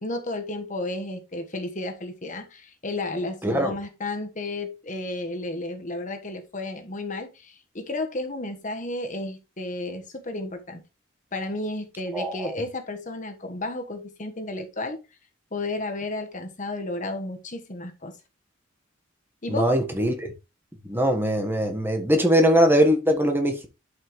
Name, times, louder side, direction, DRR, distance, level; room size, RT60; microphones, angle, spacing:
voice 1, 0.0-10.8 11.3-15.0 15.5-18.1 19.4-19.8, left 2 dB, 35° left, 1.2 m, -32 dB
voice 2, 3.4-3.7 12.1-12.5 19.5-20.3 20.8-23.7, equal, 10° right, 1.3 m, -21 dB
11.0 x 5.7 x 3.1 m
head